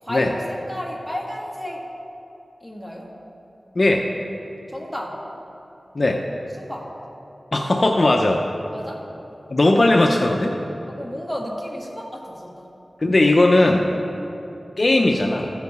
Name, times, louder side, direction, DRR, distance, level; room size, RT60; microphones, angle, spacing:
voice 1, 0.0-1.9 2.6-3.1 4.7-5.2 6.6-6.9 8.7-9.1 10.9-12.7 14.0-14.3, equal, ahead, -2 dB, 1.5 m, -32 dB
voice 2, 3.8-4.1 5.9-6.2 7.5-8.4 9.5-10.6 13.0-13.9 14.8-15.5, left 2 dB, 50° left, 2 dB, 0.6 m, -18 dB
15.0 x 5.1 x 4.7 m, 2.9 s
wide cardioid pair, 65°, 0 cm